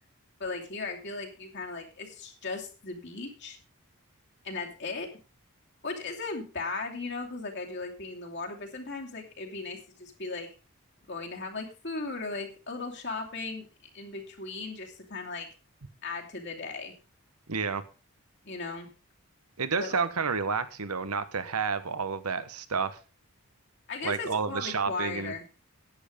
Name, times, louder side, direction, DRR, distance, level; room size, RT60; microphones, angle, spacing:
voice 1, 0.4-3.6 4.4-5.1 5.8-10.5 11.1-13.7 13.9-15.5 16.0-16.9 18.4-18.9 19.7-20.0 23.9-25.4, left 3 dB, 50° left, 1 dB, 2.8 m, -37 dB
voice 2, 17.5-17.8 19.6-23.0 24.0-25.3, right 5 dB, 90° right, 12 dB, 1.2 m, -30 dB
11.0 x 9.0 x 5.2 m, 0.33 s
head